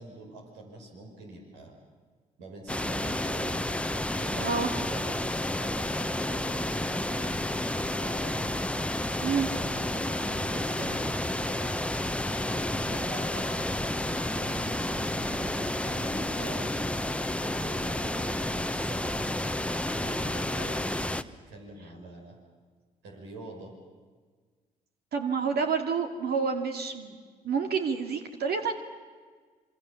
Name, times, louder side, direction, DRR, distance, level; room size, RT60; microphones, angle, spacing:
voice 1, 0.0-1.7 2.4-3.6 4.1-7.4 8.0-8.5 9.1-11.7 12.5-16.7 17.4-22.4 23.0-23.7, right 2 dB, 75° right, 1 dB, 5.4 m, -45 dB
sound 1, 2.7-21.2, left 1 dB, 5° left, 1.2 m, -30 dB
voice 2, 25.1-27.1 27.4-28.7, right 5 dB, 60° right, 5 dB, 2.4 m, -28 dB
26.5 x 25.5 x 7.2 m, 1.5 s
hypercardioid pair, 50°, 18 cm